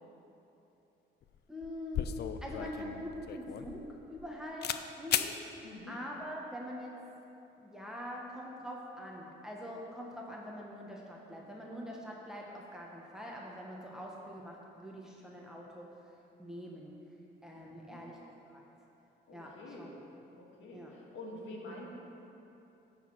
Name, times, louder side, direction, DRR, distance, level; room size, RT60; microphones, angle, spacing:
sound 1, 1.2-1.3 1.6-4.3 4.6-4.8 5.1-5.3, left 9 dB, 55° left, 0.5 m, -35 dB
voice 1, 1.5-2.1 2.4-4.7 5.0-5.4 5.9-6.9 7.6-15.9 16.4-17.0 17.4-18.2 18.4-18.6 19.3-19.9 20.7-20.9, equal, 5° right, -3 dB, 1.3 m, -44 dB
voice 2, 5.6-6.0 17.6-18.0 19.3-20.0 20.4-21.9, left 1 dB, 75° left, -2 dB, 1.9 m, -47 dB
10.5 x 4.2 x 7.5 m, 2.9 s
cardioid pair, 90°, 20 cm